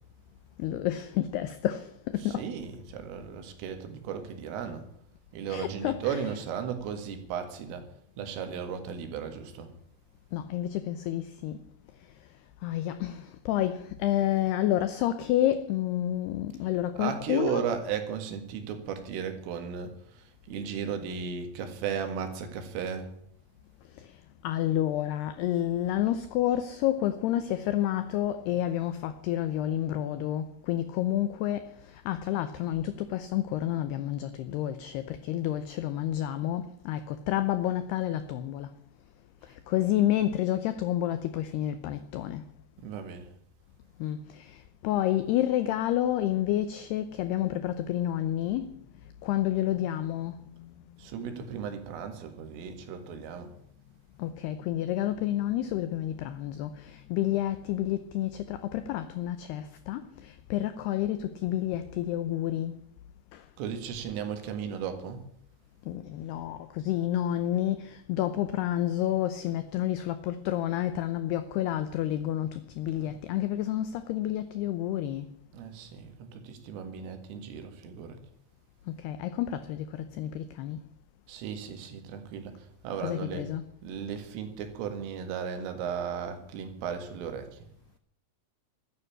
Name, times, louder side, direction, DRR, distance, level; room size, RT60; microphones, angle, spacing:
voice 1, 0.6-2.5 5.5-6.2 10.3-11.6 12.6-17.6 24.0-24.1 24.4-38.7 39.4-42.4 44.0-48.7 49.2-50.7 54.2-62.8 63.3-63.4 65.9-75.3 78.9-80.8 83.0-83.6, left 12 dB, 85° left, 2.3 m, -29 dB
voice 2, 2.2-4.9 5.3-7.9 8.2-9.7 17.0-23.1 42.8-43.3 51.0-53.5 63.6-65.2 72.9-73.2 75.5-78.2 81.3-82.6 82.8-83.5 83.8-87.6, right 7 dB, 85° right, 4.4 m, -35 dB
13.5 x 9.5 x 9.9 m
omnidirectional pair, 5.7 m